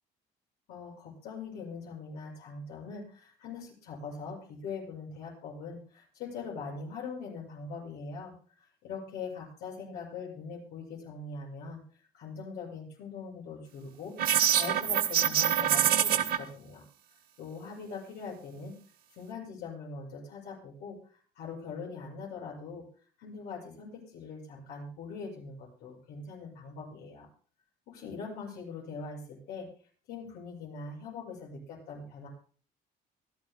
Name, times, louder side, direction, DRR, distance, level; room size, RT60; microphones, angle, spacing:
voice 1, 0.7-16.8 17.4-18.8 19.1-22.9 23.2-27.3 27.9-29.7 30.1-32.3, left 4 dB, 85° left, -2 dB, 6.8 m, -42 dB
sound 1, 14.2-16.4, right 10 dB, 60° right, 1.1 m, -25 dB
24.5 x 12.5 x 2.2 m, 0.44 s
cardioid pair, 110°, 17 cm